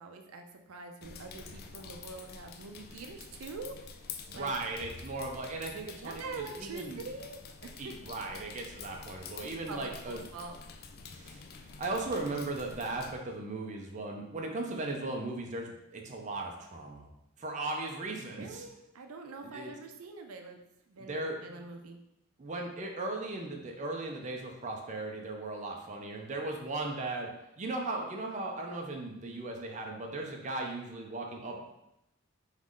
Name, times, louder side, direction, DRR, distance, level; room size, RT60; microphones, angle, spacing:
voice 1, 0.0-3.8 4.3-4.5 6.0-8.0 9.4-10.6 18.3-20.6 20.9-22.0, right 3 dB, 90° right, 4 dB, 0.5 m, -44 dB
sound 1, 1.0-13.1, left 5 dB, 45° left, 0.3 m, -48 dB
voice 2, 4.3-7.0 7.8-10.2 11.1-11.4 11.8-17.1 17.4-18.6 19.5-19.7 21.0-21.6 22.4-27.3 27.6-31.6, right 2 dB, 35° right, 1 dB, 0.5 m, -37 dB
3.7 x 3.1 x 3.7 m, 0.86 s
head